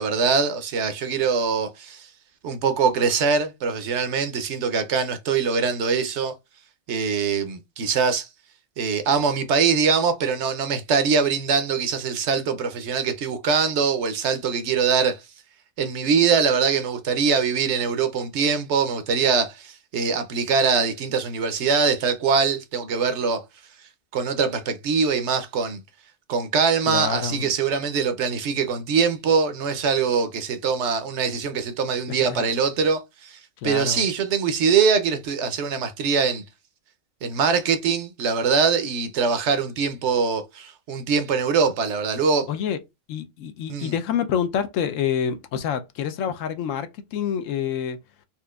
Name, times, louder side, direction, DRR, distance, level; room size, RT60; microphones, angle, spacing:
voice 1, 0.0-2.1 2.4-6.3 6.9-8.3 8.8-15.2 15.8-23.4 24.1-25.8 26.3-36.4 37.2-42.5 43.7-43.9, right 5 dB, 65° right, 0.9 m, -23 dB
voice 2, 26.9-27.5 32.1-32.5 33.6-34.0 42.5-42.8 43.1-48.0, left 8 dB, 80° left, 1.0 m, -27 dB
4.3 x 2.5 x 2.3 m
omnidirectional pair, 1.4 m